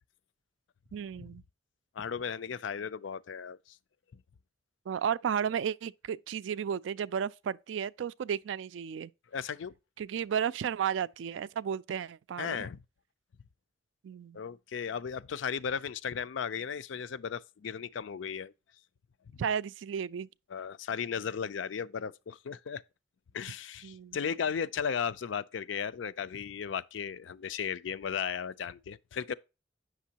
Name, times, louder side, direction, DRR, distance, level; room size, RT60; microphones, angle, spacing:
voice 1, 0.9-1.4 4.9-9.1 10.0-12.7 14.0-14.4 19.4-20.3 23.8-24.2, right 8 dB, 80° right, 0.3 m, -33 dB
voice 2, 1.9-3.8 4.1-4.2 9.3-9.7 12.4-12.8 14.3-18.5 19.3-19.4 20.5-22.8 23.3-29.3, left 7 dB, 90° left, 0.4 m, -35 dB
8.2 x 6.1 x 2.8 m
head